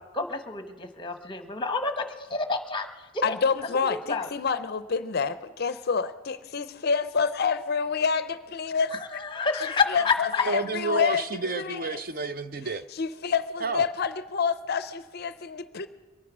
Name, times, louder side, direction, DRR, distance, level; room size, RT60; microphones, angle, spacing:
voice 1, 0.0-3.3 4.1-4.3 8.9-10.4, left 4 dB, 20° left, 7 dB, 0.9 m, -29 dB
voice 2, 3.2-8.9 9.6-11.2 11.5-12.0 12.9-15.9, left 5 dB, 50° left, 13 dB, 0.5 m, -28 dB
voice 3, 10.5-12.8 13.6-13.8, right 2 dB, 45° right, 12 dB, 0.5 m, -30 dB
23.0 x 9.5 x 6.0 m, 1.3 s
head